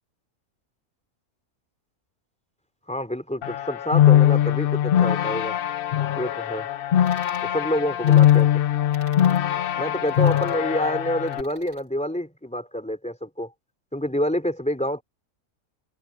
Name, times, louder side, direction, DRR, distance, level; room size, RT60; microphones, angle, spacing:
voice 1, 2.9-5.6 6.2-6.7 7.4-8.6 9.8-13.5 13.9-15.0, equal, 5° left, 3.4 m, -28 dB
sound 1, 3.4-11.4, left 11 dB, 70° left, 0.5 m, -21 dB
sound 2, 7.1-7.5 8.1-8.4 8.9-9.4 10.1-10.6 11.3-11.8, right 2 dB, 85° right, 4.8 m, -49 dB
omnidirectional pair, 1.6 m